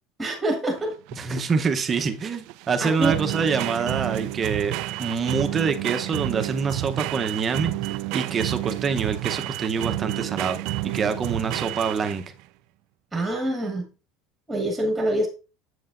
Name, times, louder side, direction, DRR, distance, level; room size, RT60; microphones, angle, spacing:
voice 1, 0.2-0.9 1.2-1.4 2.8-3.1 13.1-13.8 14.5-15.3, right 1 dB, 5° right, 1.6 m, -25 dB
sound 1, 0.8-12.4, right 17 dB, 65° right, 0.3 m, -30 dB
voice 2, 1.1-7.7 8.1-10.6 10.8-12.2, right 5 dB, 25° right, 0.8 m, -26 dB
7.8 x 7.8 x 2.5 m
cardioid pair, 155°, 0 cm